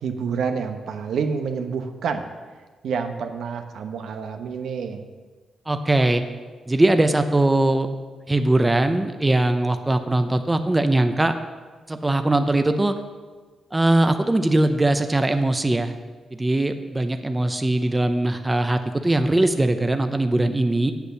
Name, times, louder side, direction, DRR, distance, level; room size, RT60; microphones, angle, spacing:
voice 1, 0.0-2.2 2.8-5.0, right 6 dB, 80° right, 6 dB, 0.9 m, -28 dB
voice 2, 5.7-6.2 6.7-7.9 8.3-11.3 11.9-12.9 13.7-15.9 16.3-20.9, right 2 dB, 15° right, 8 dB, 0.6 m, -20 dB
8.2 x 8.2 x 6.8 m, 1.4 s
cardioid pair, 100°, 0 cm